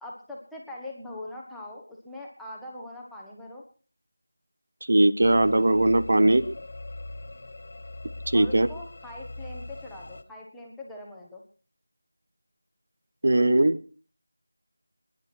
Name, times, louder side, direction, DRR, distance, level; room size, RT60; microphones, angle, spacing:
voice 1, 0.0-3.6 8.3-11.4, left 1 dB, ahead, -4 dB, 1.5 m, -42 dB
voice 2, 4.9-6.4 8.3-8.7 13.2-13.8, right 1 dB, 50° right, 12 dB, 1.2 m, -20 dB
sound 1, 5.2-10.2, left 2 dB, 40° left, 1.3 m, -40 dB
25.5 x 10.5 x 4.6 m, 0.40 s
figure-of-eight pair, 170°, 0 cm